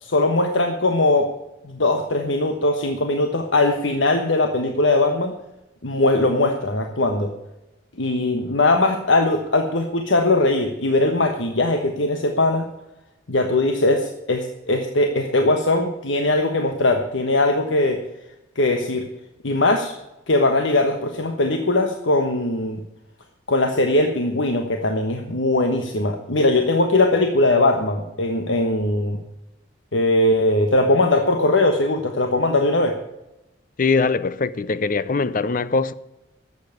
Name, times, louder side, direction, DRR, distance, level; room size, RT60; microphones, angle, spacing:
voice 1, 0.0-1.3 1.6-5.3 5.8-7.3 8.0-12.7 13.3-18.0 18.5-19.1 19.4-20.0 20.3-22.8 23.5-29.2 29.9-33.0, left 2 dB, 80° left, 1.3 m, -20 dB
voice 2, 33.8-35.9, left 4 dB, 45° left, 0.6 m, -21 dB
12.0 x 8.1 x 9.3 m
head